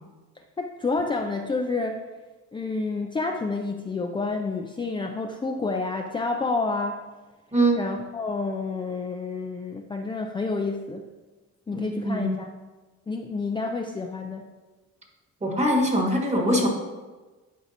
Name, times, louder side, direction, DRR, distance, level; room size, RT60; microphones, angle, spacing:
voice 1, 0.6-2.0 2.5-7.1 7.8-11.1 11.7-12.5 13.1-14.5, left 3 dB, 15° left, 3 dB, 0.4 m, -29 dB
voice 2, 7.5-7.8 11.7-12.3 15.4-16.7, right 1 dB, 20° right, 1 dB, 1.6 m, -23 dB
10.5 x 4.6 x 2.9 m, 1.3 s
cardioid pair, 90°, 30 cm